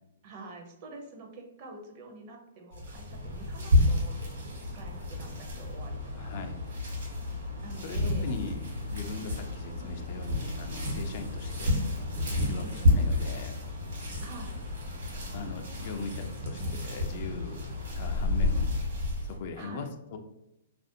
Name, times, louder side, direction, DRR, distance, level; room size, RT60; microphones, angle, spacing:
voice 1, 0.2-6.5 7.6-8.3 12.5-12.8 14.2-14.6 15.9-16.8 19.6-19.9, right 3 dB, 45° right, 2 dB, 0.5 m, -47 dB
sound 1, 2.7-19.4, left 2 dB, 70° right, 1.0 m, -30 dB
voice 2, 6.2-6.6 7.8-11.8 12.4-13.5 15.3-18.7 19.2-20.2, left 4 dB, 50° left, 6 dB, 0.3 m, -40 dB
2.5 x 2.1 x 2.6 m, 0.90 s
hypercardioid pair, 135°, 0 cm